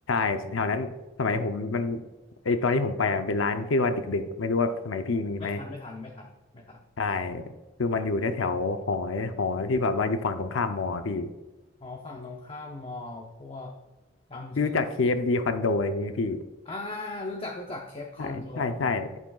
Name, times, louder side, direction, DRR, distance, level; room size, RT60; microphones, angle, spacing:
voice 1, 0.1-0.9 1.2-2.0 2.4-5.6 7.0-7.5 7.8-11.3 14.6-16.4 18.2-19.1, left 3 dB, 85° left, 8 dB, 0.6 m, -27 dB
voice 2, 5.4-6.8 11.8-13.8 14.3-14.7 16.7-19.0, left 2 dB, 25° left, 1 dB, 0.7 m, -38 dB
11.0 x 7.4 x 2.3 m, 1.1 s
head